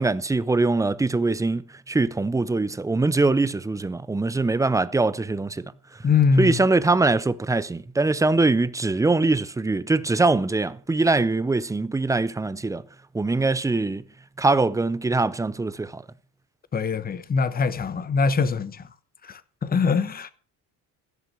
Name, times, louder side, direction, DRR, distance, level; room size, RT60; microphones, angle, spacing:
voice 1, 0.0-6.0 6.4-12.8 13.1-14.0 14.4-16.0, right 3 dB, 10° right, 0.5 m, -23 dB
voice 2, 6.0-6.5 16.7-18.9 19.2-20.3, left 5 dB, 20° left, 0.9 m, -23 dB
15.5 x 6.2 x 7.4 m
cardioid pair, 135°, 40 cm